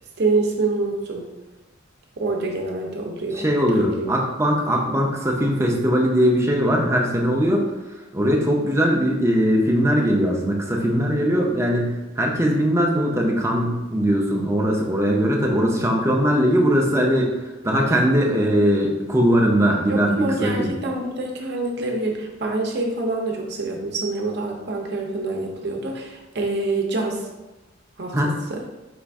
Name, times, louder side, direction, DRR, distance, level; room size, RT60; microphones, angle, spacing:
voice 1, 0.2-1.3 2.2-3.4 3.7-4.1 19.9-27.3 28.0-28.6, right 2 dB, 60° right, 0 dB, 0.7 m, -26 dB
voice 2, 3.4-7.7 8.1-17.3 17.6-20.7 28.1-28.3, equal, 15° right, 0 dB, 0.6 m, -20 dB
5.1 x 2.5 x 3.5 m, 1.1 s
head